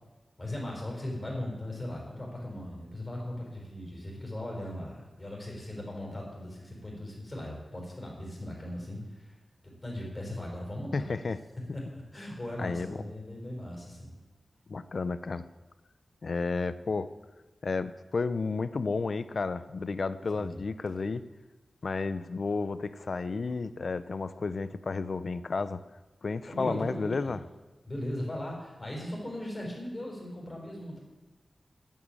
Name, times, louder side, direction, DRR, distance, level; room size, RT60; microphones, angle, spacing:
voice 1, 0.4-9.3 9.6-11.1 11.7-14.2 20.3-20.6 26.5-27.4 27.9-31.0, left 1 dB, 20° left, -2 dB, 5.0 m, -38 dB
voice 2, 10.9-11.4 12.6-13.0 14.7-15.4 16.2-17.1 17.6-21.2 21.8-25.8 26.2-27.4, left 4 dB, 55° left, 13 dB, 0.6 m, -32 dB
11.0 x 9.3 x 8.8 m, 1.2 s
wide cardioid pair, 125°, 0 cm